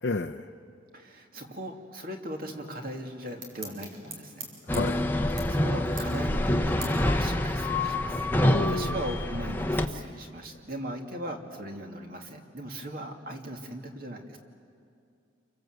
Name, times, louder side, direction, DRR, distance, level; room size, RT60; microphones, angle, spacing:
voice 1, 0.0-0.5 4.7-5.0 8.4-9.0, left 2 dB, 65° left, 2 dB, 0.7 m, -31 dB
voice 2, 0.9-4.5 5.3-8.2 8.7-14.4, right 1 dB, 45° right, 3 dB, 2.3 m, -39 dB
sound 1, 2.9-9.3, right 3 dB, 85° right, 4.9 m, -47 dB
sound 2, 4.7-9.9, left 1 dB, 10° left, 0.9 m, -26 dB
28.5 x 24.5 x 7.9 m, 2.4 s
head